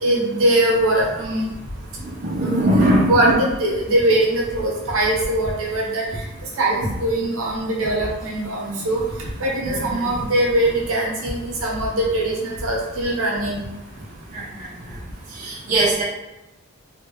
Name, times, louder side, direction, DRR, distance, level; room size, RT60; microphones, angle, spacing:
voice 1, 0.0-1.5 2.4-2.6 3.1-6.1 6.6-9.0 9.4-13.6, right 1 dB, 70° right, -3 dB, 0.9 m, -21 dB
voice 2, 2.0-3.3 9.6-10.0 14.3-14.4 15.4-16.0, right 1 dB, 35° right, -7 dB, 0.6 m, -20 dB
3.3 x 2.3 x 3.0 m, 1.0 s
head